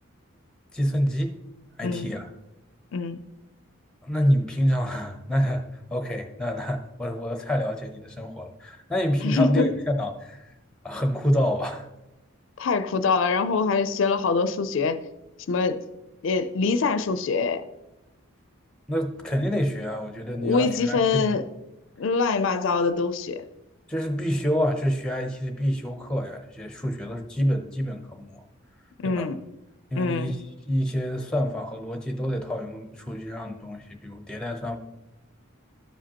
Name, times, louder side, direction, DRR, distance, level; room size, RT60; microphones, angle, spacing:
voice 1, 0.7-1.4 1.8-2.3 4.0-5.6 5.9-10.5 10.8-11.9 18.9-21.4 23.9-28.4 29.0-29.3 29.9-30.4 30.7-34.8, equal, 5° left, 5 dB, 0.6 m, -27 dB
voice 2, 1.8-2.1 2.9-3.2 9.2-9.8 12.6-15.0 15.5-15.8 16.2-17.6 20.4-21.4 22.0-23.4 29.0-29.4 30.0-30.3, left 4 dB, 65° left, 11 dB, 0.4 m, -24 dB
13.0 x 5.0 x 2.9 m, 0.94 s
head